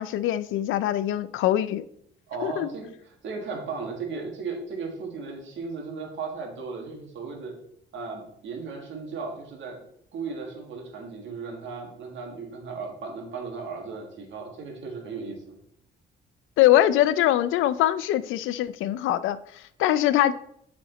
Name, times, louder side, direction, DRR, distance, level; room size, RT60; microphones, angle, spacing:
voice 1, 0.0-1.8 2.4-2.7 16.6-20.3, left 13 dB, 85° left, 15 dB, 0.4 m, -23 dB
voice 2, 2.3-2.9 3.2-7.5 7.9-9.8 10.1-15.6, right 4 dB, 70° right, 1 dB, 1.8 m, -36 dB
5.9 x 5.0 x 3.9 m, 0.69 s
cardioid pair, 90°, 20 cm